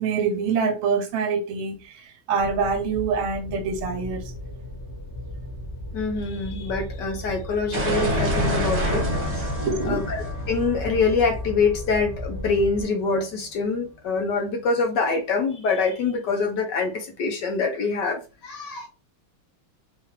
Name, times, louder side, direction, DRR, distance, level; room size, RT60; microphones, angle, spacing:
voice 1, 0.0-4.3 9.6-10.0, right 5 dB, 80° right, 1.6 m, -25 dB
sound 1, 2.4-12.8, equal, 35° left, 1.2 m, -35 dB
voice 2, 5.9-9.0 9.9-18.9, left 4 dB, 65° left, 1.2 m, -25 dB
sound 2, 7.7-12.5, equal, 25° right, 1.1 m, -27 dB
4.6 x 2.4 x 3.2 m
omnidirectional pair, 2.3 m